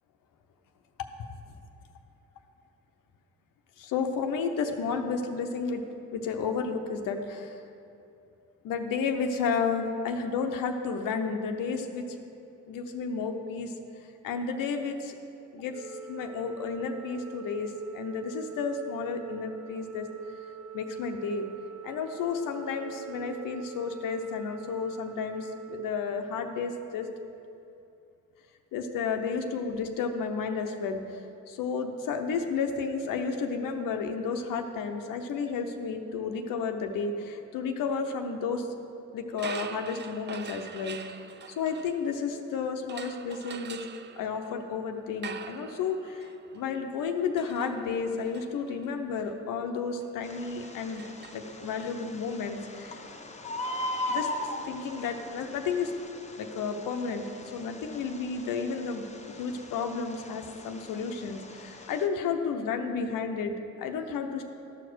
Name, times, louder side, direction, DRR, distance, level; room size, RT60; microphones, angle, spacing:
voice 1, 3.8-5.8 6.1-7.6 8.6-12.2 12.7-13.7 14.2-15.1 15.5-20.1 20.7-21.5 21.8-27.1 28.7-38.7 39.1-41.0 41.6-43.9 44.2-51.0 51.3-53.0 54.1-54.3 54.6-55.9 56.3-57.2 57.5-64.4, left 5 dB, 85° left, 5 dB, 0.8 m, -32 dB
Organ, 15.7-26.8, right 7 dB, 55° right, 0.9 m, -44 dB
sound 1, 39.3-42.4 42.9-51.9, right 7 dB, 35° right, 0.4 m, -45 dB
Bird, 50.2-62.1, left 1 dB, 20° left, 0.9 m, -39 dB
13.0 x 5.0 x 6.2 m, 2.7 s
cardioid pair, 75°, 32 cm